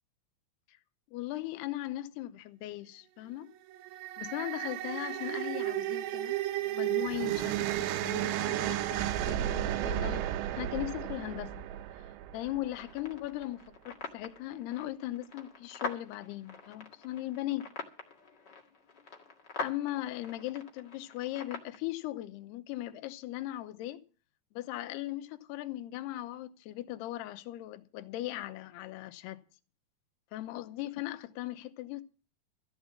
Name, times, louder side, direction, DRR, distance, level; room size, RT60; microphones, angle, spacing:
voice 1, 1.1-3.5 4.2-6.4 6.6-11.7 12.3-17.7 19.6-24.0 24.5-29.4 30.3-32.0, left 15 dB, 80° left, 2.9 m, -38 dB
sound 1, 3.7-13.0, right 13 dB, 85° right, 3.1 m, -33 dB
sound 2, 12.7-21.8, left 4 dB, 45° left, 1.4 m, -44 dB
14.5 x 8.2 x 7.2 m
omnidirectional pair, 4.8 m